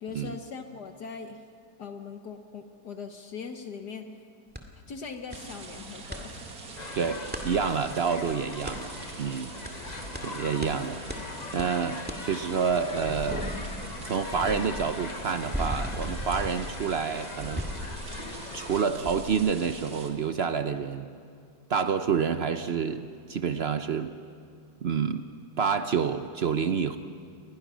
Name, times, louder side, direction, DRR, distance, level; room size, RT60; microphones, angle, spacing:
voice 1, 0.0-1.4 1.8-4.1 4.9-6.5 9.9-10.1, left 5 dB, 60° left, 6 dB, 1.6 m, -40 dB
sound 1, 4.6-4.7 5.3-5.4 5.7-6.2 7.3-7.5 8.7-8.8 9.7-9.8 10.2-10.3 10.6-10.7 11.1-11.2 11.6-11.7 12.1-12.2 12.7-18.7 19.1-19.3, equal, 5° right, 1.9 m, -36 dB
sound 2, 5.3-20.1, right 3 dB, 50° right, 2.4 m, -44 dB
sound 3, 6.8-18.8, left 4 dB, 35° left, 0.6 m, -41 dB
voice 2, 6.9-8.9 9.2-9.5 10.2-11.0 11.5-13.5 14.0-17.7 18.5-21.1 21.7-24.1 24.8-27.0, right 6 dB, 75° right, 9 dB, 0.5 m, -28 dB
29.5 x 21.5 x 6.2 m, 2.2 s
omnidirectional pair, 2.1 m